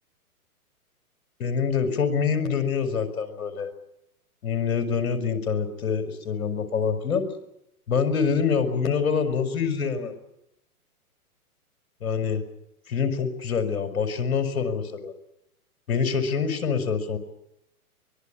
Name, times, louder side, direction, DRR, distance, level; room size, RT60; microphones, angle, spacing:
voice 1, 1.4-3.7 4.4-7.3 7.9-10.1 12.0-12.4 12.9-15.1 15.9-17.2, left 6 dB, 65° left, 9 dB, 5.1 m, -25 dB
24.0 x 21.5 x 8.5 m, 0.82 s
hypercardioid pair, 125°, 45 cm